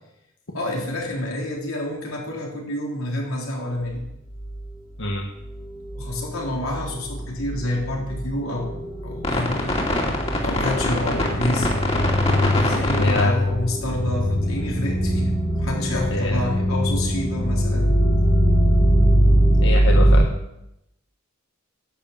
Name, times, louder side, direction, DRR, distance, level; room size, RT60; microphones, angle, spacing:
voice 1, 0.5-4.0 5.9-8.8 9.0-11.7 12.5-17.9, left 1 dB, 85° left, -1 dB, 3.8 m, -29 dB
sound 1, 4.0-4.1 4.4-4.8 5.0-20.2, equal, 30° left, 2.7 m, -21 dB
voice 2, 12.9-13.3 16.1-16.4 19.6-20.3, left 2 dB, 60° left, 1 dB, 1.3 m, -24 dB
11.0 x 7.4 x 8.7 m, 0.83 s
head